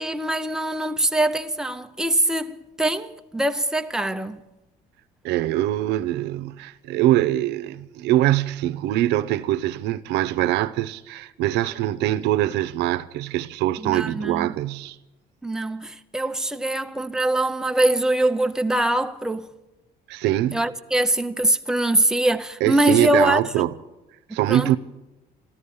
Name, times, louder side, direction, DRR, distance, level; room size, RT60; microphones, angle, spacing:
voice 1, 0.0-4.4 13.8-14.5 15.4-19.5 20.5-23.6 24.3-24.8, right 1 dB, 5° right, 0.6 m, -23 dB
voice 2, 5.2-15.0 20.1-20.6 22.6-23.7 24.3-24.8, right 14 dB, 85° right, 0.6 m, -23 dB
13.5 x 13.5 x 7.0 m
cardioid pair, 110°, 17 cm